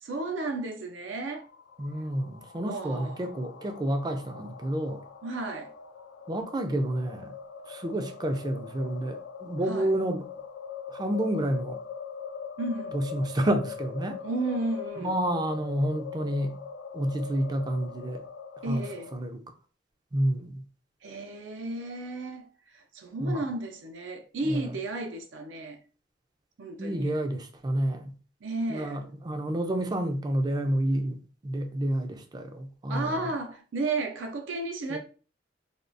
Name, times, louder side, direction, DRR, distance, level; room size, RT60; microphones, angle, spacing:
voice 1, 0.0-1.5 2.6-3.2 5.2-5.7 9.7-9.9 12.6-13.0 14.2-15.1 18.6-19.1 21.0-25.8 26.6-27.1 28.4-29.0 32.9-35.0, right 2 dB, 80° right, 0.5 m, -33 dB
sound 1, 1.3-19.1, left 6 dB, 75° left, 0.3 m, -42 dB
voice 2, 1.8-5.0 6.3-7.3 7.7-10.2 10.9-11.8 12.9-14.2 15.0-16.6 16.9-18.2 18.7-18.9 19.1-19.4 20.1-20.6 23.2-23.5 24.4-24.7 26.8-28.1 28.7-33.3 34.9-35.0, right 1 dB, 20° right, 0.4 m, -29 dB
3.5 x 2.3 x 2.5 m
head